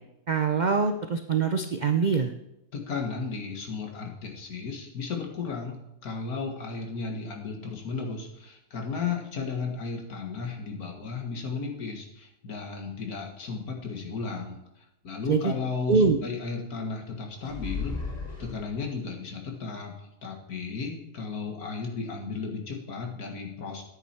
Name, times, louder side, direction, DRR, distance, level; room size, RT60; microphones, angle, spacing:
voice 1, 0.3-2.3 15.3-15.5 15.9-16.2, right 5 dB, 85° right, 7 dB, 0.4 m, -24 dB
voice 2, 2.7-5.8 6.0-18.0 18.4-23.8, left 4 dB, 75° left, 2 dB, 2.1 m, -34 dB
sound 1, 17.4-19.1, left 4 dB, 25° left, 2.1 m, -35 dB
10.5 x 8.8 x 4.5 m, 0.87 s
omnidirectional pair, 1.6 m